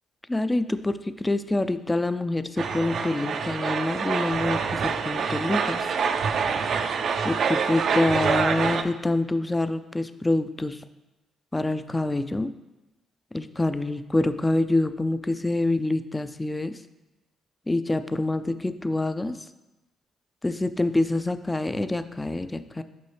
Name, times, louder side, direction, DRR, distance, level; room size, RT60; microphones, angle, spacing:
voice 1, 0.3-4.6 5.1-5.8 7.2-10.8 11.5-12.5 13.3-16.7 17.7-19.3 20.4-22.8, left 2 dB, 15° left, 11 dB, 0.3 m, -26 dB
sound 1, 2.6-8.8, right 6 dB, 60° right, 0.4 m, -26 dB
6.7 x 5.5 x 3.3 m, 1.0 s
cardioid pair, 90°, 0 cm